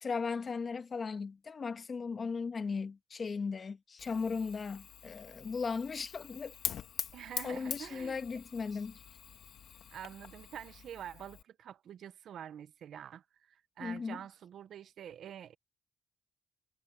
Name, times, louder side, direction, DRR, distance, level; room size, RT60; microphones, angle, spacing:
voice 1, 0.0-6.5 7.4-9.0 13.8-14.2, left 5 dB, 40° left, 1.5 m, -37 dB
Fire, 4.0-11.4, left 9 dB, 65° left, 2.0 m, -44 dB
voice 2, 7.1-8.2 9.9-15.6, right 9 dB, 65° right, 0.9 m, -47 dB
cardioid pair, 90°, 0 cm